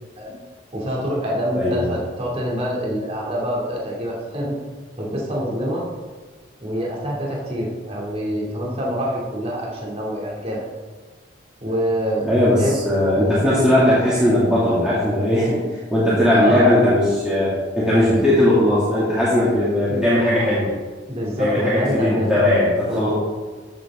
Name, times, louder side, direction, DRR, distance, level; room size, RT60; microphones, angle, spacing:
voice 1, 0.7-4.5 5.0-5.9 6.6-10.6 11.6-12.3 12.6-12.8 13.1-13.4 16.3-16.8 18.0-18.1 19.9-20.0 21.1-22.6 22.9-23.1, equal, 35° right, -4 dB, 2.5 m, -26 dB
voice 2, 1.6-1.9 12.2-15.6 15.9-20.7 21.4-23.1, left 1 dB, 5° right, -10 dB, 2.1 m, -18 dB
14.0 x 7.3 x 3.6 m, 1.4 s
head